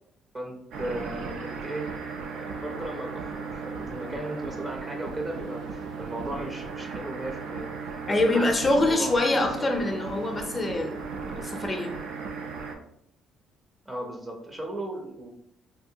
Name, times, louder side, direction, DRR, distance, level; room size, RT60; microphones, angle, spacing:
voice 1, 0.3-1.9 2.3-9.7 10.5-10.6 13.9-15.3, right 1 dB, 20° right, 1 dB, 0.6 m, -36 dB
sound 1, 0.7-12.7, right 4 dB, 75° right, 0.5 m, -36 dB
voice 2, 8.1-11.0 11.3-11.9, left 2 dB, 25° left, 3 dB, 0.5 m, -25 dB
3.4 x 2.3 x 2.7 m, 0.74 s
cardioid pair, 105°, 0 cm